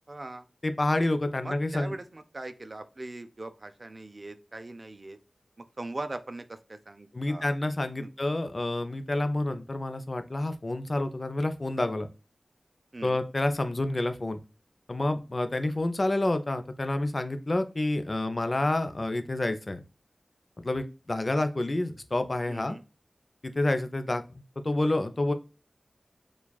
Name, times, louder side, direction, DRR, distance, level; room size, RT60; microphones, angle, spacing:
voice 1, 0.1-0.5 1.4-5.2 5.8-7.5 8.0-8.1 12.9-13.2 22.5-22.8, right 2 dB, 45° right, 9 dB, 0.5 m, -40 dB
voice 2, 0.6-1.9 7.1-12.1 13.0-14.4 14.9-19.8 20.6-22.8 23.4-25.3, left 2 dB, 45° left, 8 dB, 0.6 m, -28 dB
7.0 x 2.4 x 2.3 m, 0.32 s
wide cardioid pair, 65°, 0 cm